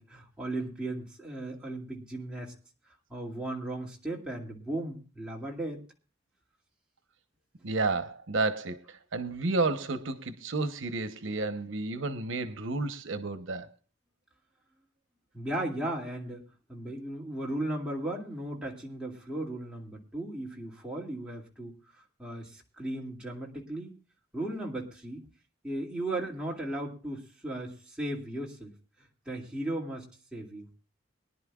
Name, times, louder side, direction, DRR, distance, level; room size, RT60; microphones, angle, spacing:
voice 1, 0.0-2.5 3.1-5.8 15.3-21.7 22.2-24.0 24.3-25.2 25.6-28.7 29.3-30.7, right 1 dB, 5° right, 2.4 m, -36 dB
voice 2, 7.6-13.7, right 3 dB, 85° right, 0.9 m, -31 dB
23.0 x 10.5 x 2.4 m
head